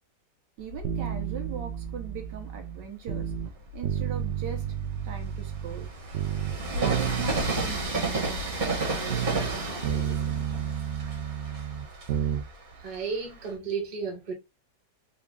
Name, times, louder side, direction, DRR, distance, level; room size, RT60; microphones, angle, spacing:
voice 1, 0.6-3.3 3.7-4.6 5.0-5.9 6.7-10.8, right 7 dB, 85° right, 1.6 m, -40 dB
Train, 0.7-2.3 2.9-13.5, right 2 dB, 50° right, 1.9 m, -33 dB
sound 1, 0.8-3.5 3.8-5.9 6.1-9.6 9.8-12.4 12.7-12.8, right 9 dB, 65° right, 0.7 m, -32 dB
voice 2, 12.8-14.3, right 5 dB, 25° right, 0.8 m, -33 dB
3.6 x 2.3 x 3.7 m
omnidirectional pair, 1.9 m